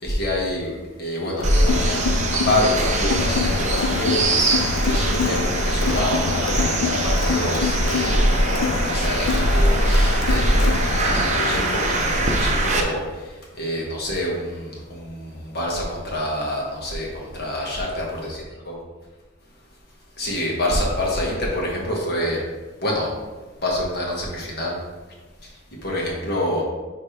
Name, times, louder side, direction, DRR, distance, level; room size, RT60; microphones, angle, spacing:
voice 1, 0.0-0.7 1.0-2.1 2.4-10.6 11.1-18.8 20.2-22.4 22.8-23.1 23.6-24.8 25.8-26.6, left 1 dB, 50° left, -3 dB, 1.7 m, -27 dB
Crowd, 1.4-12.9, left 4 dB, 75° left, 0.5 m, -26 dB
sound 1, 1.4-12.8, right 1 dB, 35° right, 0.8 m, -21 dB
10.0 x 3.4 x 3.4 m, 1.3 s
head